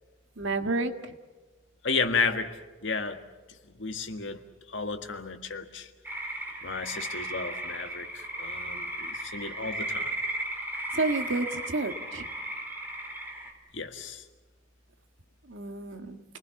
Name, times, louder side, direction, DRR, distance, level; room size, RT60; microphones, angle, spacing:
voice 1, 0.4-0.9 10.9-12.3 15.5-16.2, right 3 dB, 75° right, 7 dB, 1.8 m, -30 dB
voice 2, 1.8-2.6 2.8-3.2 3.7-4.4 4.7-5.9 6.6-10.1 13.7-14.2, left 4 dB, 70° left, 7 dB, 1.8 m, -32 dB
sound 1, 6.0-13.5, right 1 dB, 10° right, 3.7 m, -35 dB
29.5 x 20.0 x 7.2 m, 1.2 s
head